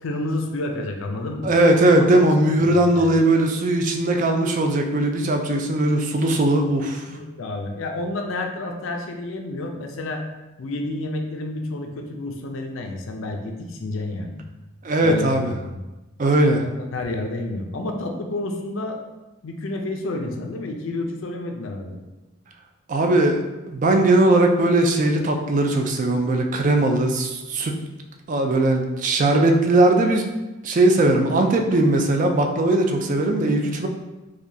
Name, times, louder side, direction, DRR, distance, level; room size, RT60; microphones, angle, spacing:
voice 1, 0.0-1.5 2.0-2.1 2.6-3.1 7.1-10.2 10.6-14.4 15.0-15.8 16.6-19.0 19.4-22.0, left 2 dB, 65° left, 3 dB, 0.5 m, -30 dB
voice 2, 1.4-7.1 14.8-15.5 16.2-16.6 22.9-27.7 28.3-30.2 30.6-33.9, right 2 dB, 35° right, 3 dB, 0.3 m, -19 dB
4.7 x 2.2 x 2.7 m, 1.1 s
head